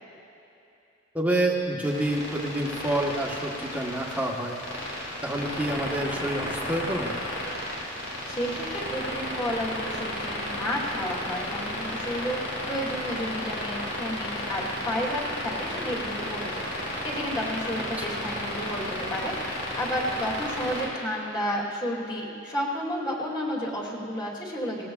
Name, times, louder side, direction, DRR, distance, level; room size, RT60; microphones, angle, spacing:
voice 1, 1.1-4.6 5.2-7.2 18.0-18.3, right 1 dB, 10° right, -2 dB, 1.2 m, -28 dB
sound 1, 1.8-20.8, left 1 dB, 85° left, 3.9 m, -33 dB
voice 2, 8.3-19.3 19.7-24.9, equal, 20° left, -4 dB, 2.3 m, -32 dB
21.0 x 18.5 x 2.4 m, 3.0 s
head